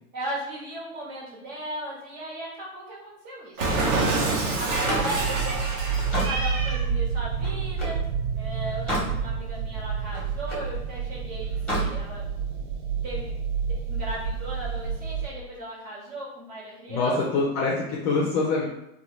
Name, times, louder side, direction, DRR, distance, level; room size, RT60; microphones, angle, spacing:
voice 1, 0.1-4.0 4.5-5.3 6.2-8.0 8.3-12.2 13.0-13.3 13.7-17.2, right 1 dB, 45° right, -3 dB, 1.3 m, -37 dB
Cat, 3.6-6.9, right 3 dB, 30° right, 0.5 m, -27 dB
Slam, 4.6-8.0 8.5-9.2 9.6-10.7 11.5-11.9, equal, ahead, 1.0 m, -32 dB
sound 1, 4.7-15.3, right 6 dB, 75° right, 0.6 m, -29 dB
voice 2, 16.9-18.7, left 3 dB, 25° left, -3 dB, 0.4 m, -24 dB
2.8 x 2.3 x 3.0 m, 0.86 s
hypercardioid pair, 115°, 44 cm